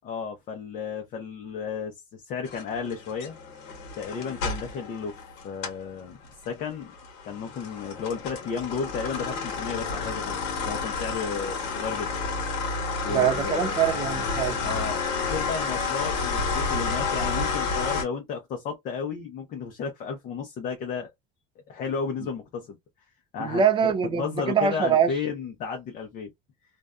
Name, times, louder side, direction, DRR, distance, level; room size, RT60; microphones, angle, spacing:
voice 1, 0.0-3.3 4.0-5.2 5.4-6.2 6.4-6.9 7.2-12.1 13.0-13.7 14.6-21.1 21.7-22.8 23.3-23.6 24.1-26.3, left 6 dB, 40° left, 0.6 m, -33 dB
sound 1, 2.5-5.9 6.2-18.0, left 4 dB, 65° left, 1.1 m, -30 dB
voice 2, 13.1-14.6 23.4-25.1, right 7 dB, 25° right, 0.4 m, -23 dB
2.5 x 2.2 x 2.3 m
cardioid pair, 145°, 20 cm